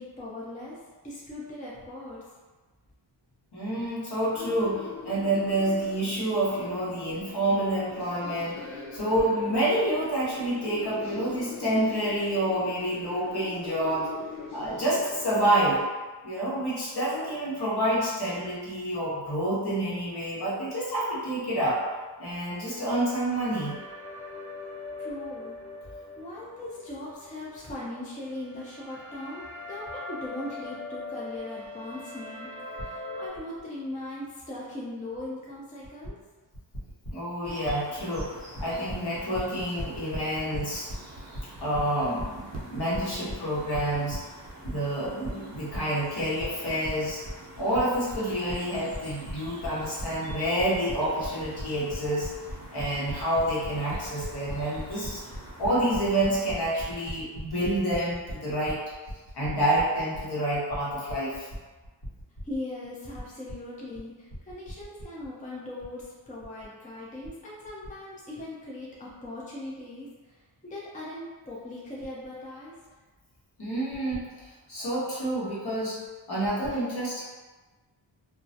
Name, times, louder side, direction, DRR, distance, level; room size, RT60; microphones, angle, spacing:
voice 1, 0.0-2.2 25.0-25.6 26.2-36.1 62.4-72.8, left 1 dB, 15° left, -6 dB, 0.6 m, -39 dB
voice 2, 3.5-14.1 14.5-15.8 16.2-21.8 22.2-23.8 37.1-40.9 41.6-44.2 44.6-47.2 47.6-52.3 52.7-55.2 55.6-58.8 59.3-61.5 73.6-76.0 76.3-77.2, right 1 dB, 55° left, -7 dB, 1.1 m, -28 dB
sound 1, 4.3-15.8, left 4 dB, 85° left, 0.5 m, -42 dB
sound 2, 22.5-33.3, left 2 dB, 35° left, 1.2 m, -42 dB
sound 3, 37.4-57.0, right 2 dB, 35° right, 0.7 m, -47 dB
2.3 x 2.0 x 2.7 m, 1.3 s
cardioid pair, 50°, 46 cm